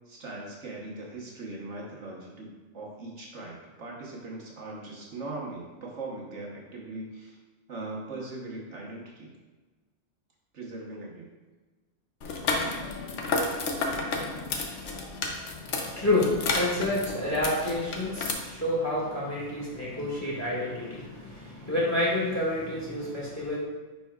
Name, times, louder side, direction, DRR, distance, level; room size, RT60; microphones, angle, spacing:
voice 1, 0.1-7.4 7.7-9.3 10.5-11.3, right 2 dB, 65° right, -3 dB, 1.4 m, -40 dB
sound 1, 12.2-18.3, left 3 dB, 70° left, 1.1 m, -31 dB
voice 2, 15.6-23.6, left 1 dB, 15° left, -7 dB, 1.7 m, -29 dB
9.9 x 4.6 x 2.4 m, 1.3 s
omnidirectional pair, 1.3 m